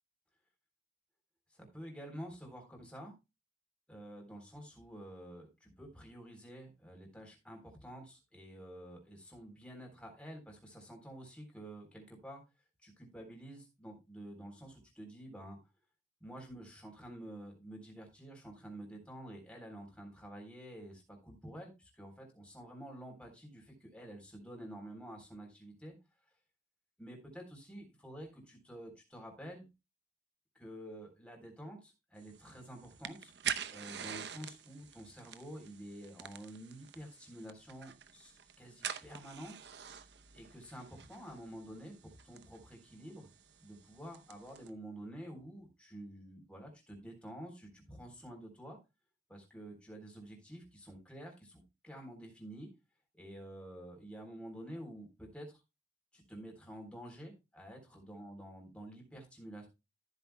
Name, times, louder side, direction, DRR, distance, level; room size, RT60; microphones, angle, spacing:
voice 1, 1.5-3.1 3.9-12.4 12.8-15.6 16.2-25.9 27.0-29.6 30.6-33.3 33.7-39.6 40.3-43.3 43.6-48.8 49.3-52.7 53.1-55.6 56.1-59.7, right 1 dB, 5° left, 0 dB, 3.7 m, -49 dB
sound 1, 32.2-44.7, right 8 dB, 65° right, 0.8 m, -46 dB
14.0 x 8.2 x 2.2 m, 0.25 s
head